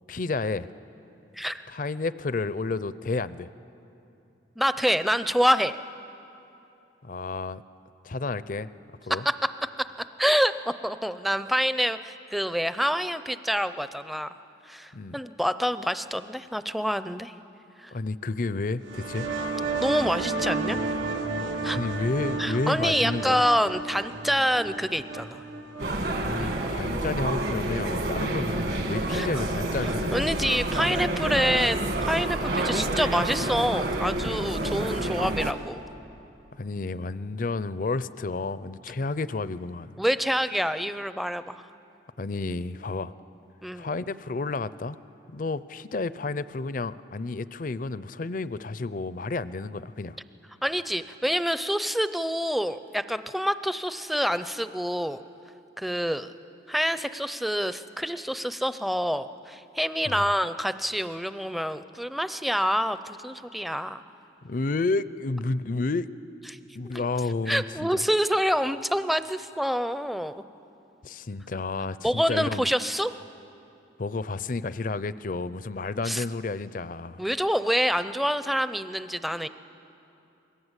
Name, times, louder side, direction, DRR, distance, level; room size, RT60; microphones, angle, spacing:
voice 1, 0.1-0.7 1.7-3.5 7.0-7.6 8.0-8.7 9.0-9.2 14.9-15.2 17.9-19.3 21.7-23.4 26.2-30.4 36.5-40.0 42.2-43.1 43.7-45.0 45.3-50.2 60.0-60.4 64.4-66.1 66.7-68.0 71.0-72.7 74.0-77.2, left 3 dB, 45° left, 15 dB, 0.5 m, -31 dB
voice 2, 4.6-5.7 9.1-9.3 10.2-10.5 10.8-14.3 14.7-17.3 17.8-17.9 19.8-20.8 21.6-21.8 22.4-25.4 29.1-29.3 30.1-35.8 40.0-41.6 43.6-43.9 50.6-55.2 55.8-56.3 56.7-64.0 66.5-66.6 66.8-67.0 67.5-70.4 72.0-73.1 76.1-76.2 77.2-79.5, equal, ahead, 12 dB, 0.5 m, -27 dB
sound 1, 18.8-26.2, right 3 dB, 90° right, 2.0 m, -32 dB
sound 2, 25.8-35.5, right 1 dB, 55° right, 1.8 m, -28 dB
28.5 x 21.5 x 8.2 m, 2.8 s
head